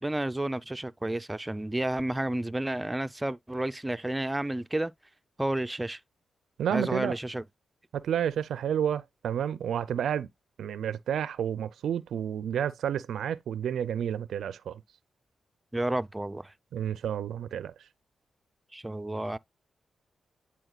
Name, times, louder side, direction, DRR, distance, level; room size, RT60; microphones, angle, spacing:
voice 1, 0.0-4.9 5.4-6.0 6.7-7.4 15.7-16.5 18.7-19.4, right 1 dB, 15° right, 0.4 m, -31 dB
voice 2, 6.6-7.1 7.9-10.3 10.6-14.8 16.7-17.7, right 9 dB, 85° right, 0.4 m, -30 dB
9.8 x 4.3 x 2.3 m
cardioid pair, 65°, 0 cm